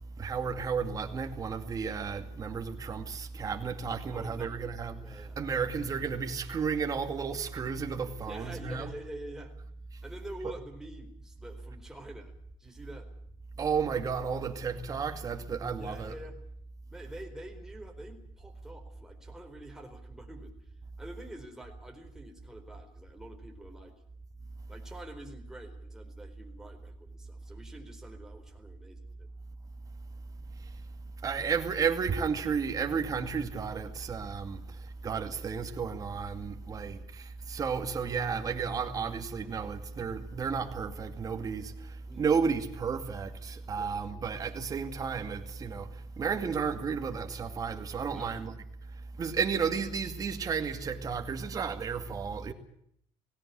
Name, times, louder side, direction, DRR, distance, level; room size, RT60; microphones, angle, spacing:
voice 1, 0.2-8.9 13.6-16.1 30.5-30.8 31.2-48.5 48.9-52.5, right 6 dB, 35° right, 2.4 m, -33 dB
voice 2, 4.1-4.7 5.0-5.4 8.3-9.5 10.0-12.3 12.6-13.1 15.8-16.4 16.9-20.7 21.0-23.9 24.7-29.3 42.1-42.3 43.7-44.3 48.1-48.4, right 1 dB, 5° right, 4.3 m, -47 dB
18.0 x 17.5 x 9.9 m
cardioid pair, 120°, 11 cm